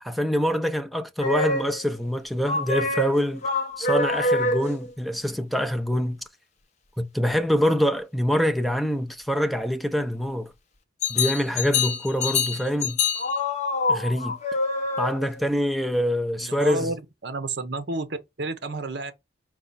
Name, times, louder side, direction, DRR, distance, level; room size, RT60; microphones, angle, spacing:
voice 1, 0.0-3.5 3.8-6.2 7.0-10.5 11.1-13.0 13.9-14.4 15.0-16.9, equal, ahead, 0.4 m, -25 dB
sound 1, 1.2-1.9 2.5-4.9 11.0-15.4, left 3 dB, 35° left, 0.8 m, -26 dB
voice 2, 16.4-19.1, right 2 dB, 55° right, 0.8 m, -31 dB
4.7 x 2.3 x 4.0 m
head